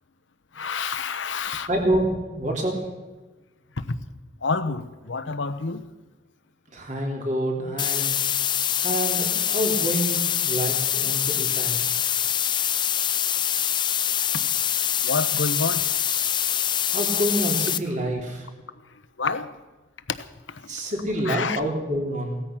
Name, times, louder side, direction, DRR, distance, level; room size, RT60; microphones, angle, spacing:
voice 1, 0.5-1.7 3.8-4.0 4.4-5.8 15.0-15.9 19.2-19.5 20.1-20.8 21.2-21.6, left 4 dB, 85° left, 12 dB, 1.0 m, -28 dB
voice 2, 1.6-2.9 6.7-8.2 8.4-11.8 16.9-18.5 20.7-22.4, right 1 dB, 40° right, 1 dB, 3.1 m, -27 dB
sound 1, 7.8-17.8, left 10 dB, 25° left, 0.4 m, -24 dB
18.0 x 13.5 x 5.9 m, 1.2 s
head